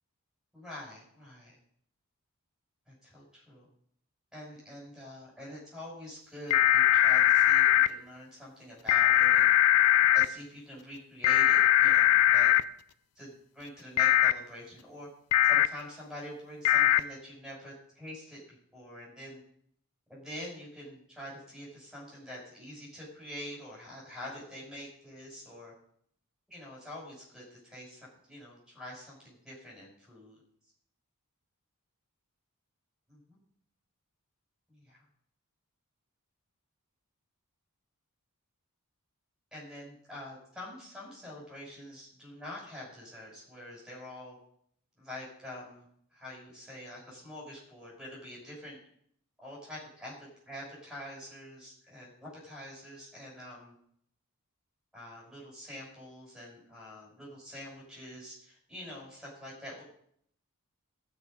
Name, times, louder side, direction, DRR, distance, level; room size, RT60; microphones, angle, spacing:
voice 1, 0.5-1.5 2.9-3.7 4.3-9.5 10.1-12.5 13.2-15.1 15.4-19.4 20.1-25.7 26.5-30.4 33.1-33.4 34.7-35.0 39.5-44.4 45.0-45.9 46.1-48.8 49.4-50.1 50.5-53.7 54.9-59.8, left 1 dB, ahead, -5 dB, 6.0 m, -46 dB
sound 1, 6.5-7.9 8.9-10.3 11.2-12.6 14.0-14.3 15.3-15.7 16.6-17.0, left 12 dB, 85° left, 0.4 m, -21 dB
15.0 x 6.6 x 5.2 m, 0.68 s
head